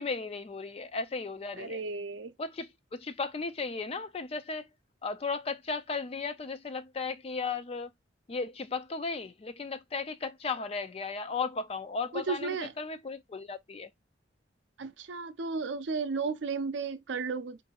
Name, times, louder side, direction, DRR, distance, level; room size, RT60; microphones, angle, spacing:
voice 1, 0.0-1.8 2.4-4.7 5.0-7.9 8.3-13.9, left 4 dB, 30° left, 0.4 m, -35 dB
voice 2, 1.6-2.3 12.1-12.7 14.8-17.6, right 4 dB, 65° right, 0.5 m, -34 dB
4.7 x 2.6 x 2.8 m
head